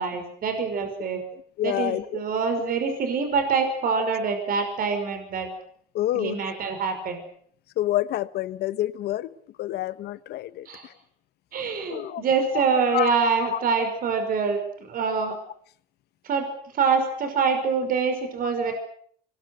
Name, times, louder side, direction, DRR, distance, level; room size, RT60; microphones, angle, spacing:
voice 1, 0.0-1.2 1.6-5.5 6.1-7.2 10.7-10.9 11.5-14.6 14.9-15.4 16.2-18.7, right 5 dB, 60° right, 7 dB, 5.6 m, -25 dB
voice 2, 1.3-2.0 5.9-6.4 7.8-10.9 11.9-12.2 12.9-13.2 13.5-13.6, left 14 dB, 75° left, 14 dB, 1.3 m, -28 dB
25.5 x 21.5 x 8.0 m, 0.62 s
cardioid pair, 110°, 17 cm